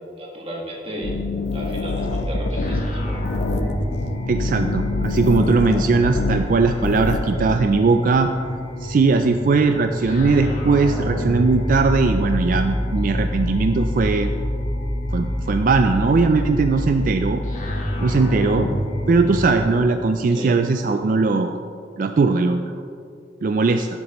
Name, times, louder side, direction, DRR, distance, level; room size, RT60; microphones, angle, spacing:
voice 1, 0.2-1.2 1.5-3.2 20.3-20.6, right 1 dB, 30° right, -3 dB, 1.5 m, -34 dB
sound 1, 1.0-7.6, left 3 dB, 70° left, 0.6 m, -26 dB
sound 2, 1.9-19.6, equal, 45° left, 1.4 m, -27 dB
voice 2, 4.3-8.3 8.8-14.3 15.1-17.4 18.0-18.7 19.1-21.6 22.0-22.6 23.4-23.9, right 4 dB, 50° right, 7 dB, 0.4 m, -19 dB
12.5 x 9.6 x 3.0 m, 2.5 s
head